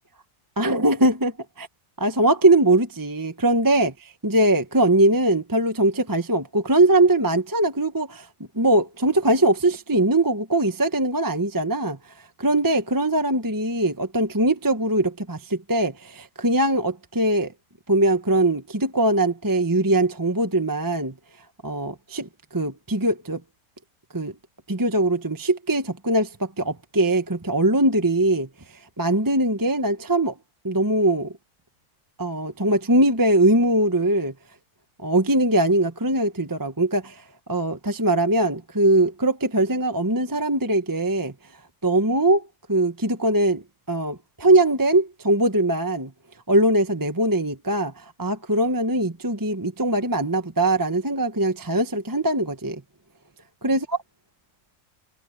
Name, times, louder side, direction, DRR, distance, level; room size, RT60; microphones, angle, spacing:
voice 1, 0.6-1.7 2.0-8.3 8.5-12.0 12.4-17.5 17.9-21.1 21.6-23.4 24.1-24.3 24.7-28.5 29.0-30.3 30.6-31.3 32.2-34.3 35.0-37.2 37.5-41.3 41.8-46.1 46.5-52.8 53.6-53.8, right 1 dB, 15° right, 1.2 m, -21 dB
omnidirectional pair, 1.4 m